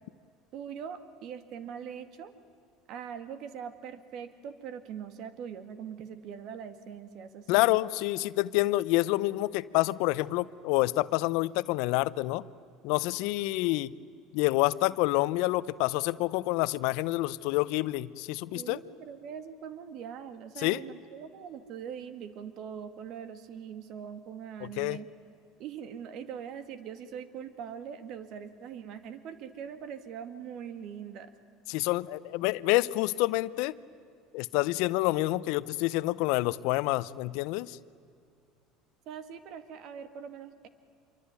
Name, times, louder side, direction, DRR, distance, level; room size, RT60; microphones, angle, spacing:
voice 1, 0.5-2.3 2.9-7.9 18.5-25.1 25.6-31.3 39.1-40.7, right 8 dB, 60° right, 11 dB, 1.9 m, -42 dB
voice 2, 7.5-12.4 12.8-13.9 14.3-18.8 20.6-20.8 24.6-25.0 31.7-33.8 34.3-37.8, left 19 dB, 70° left, 18 dB, 0.7 m, -28 dB
26.5 x 23.5 x 9.6 m, 2.3 s
supercardioid pair, 90°, 0 cm